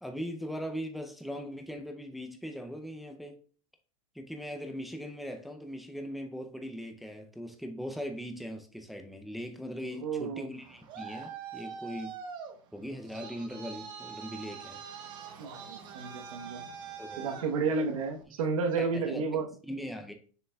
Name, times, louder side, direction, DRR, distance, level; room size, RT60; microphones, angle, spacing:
voice 1, 0.0-3.4 4.1-12.1 12.7-14.8 17.0-17.6 18.8-19.2 19.6-20.1, equal, ahead, 0.4 m, -40 dB
voice 2, 9.9-10.5 15.4-16.7 17.2-19.5, right 4 dB, 80° right, 1.1 m, -31 dB
Traffic noise roadway noise, 10.5-18.2, right 6 dB, 25° right, 0.8 m, -44 dB
6.7 x 6.6 x 2.3 m
supercardioid pair, 170°, 17 cm